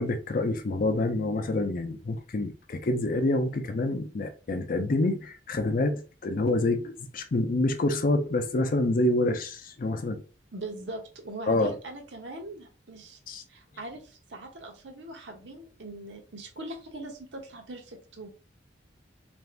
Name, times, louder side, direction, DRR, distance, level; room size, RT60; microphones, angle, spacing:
voice 1, 0.0-10.2 11.5-11.7 13.3-13.4, left 2 dB, 50° left, 0.5 m, -27 dB
voice 2, 10.5-13.2 13.5-18.3, right 2 dB, 70° right, 0.8 m, -41 dB
2.6 x 2.4 x 3.3 m
head